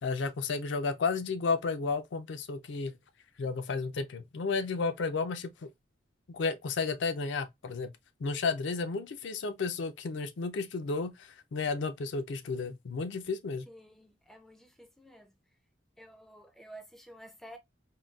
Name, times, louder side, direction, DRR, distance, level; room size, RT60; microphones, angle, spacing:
voice 1, 0.0-2.9 3.4-5.7 6.3-7.9 8.2-13.7, left 4 dB, 70° left, 0.4 m, -32 dB
voice 2, 13.7-15.3 16.0-17.6, right 1 dB, ahead, 0.3 m, -51 dB
3.8 x 2.2 x 2.2 m
head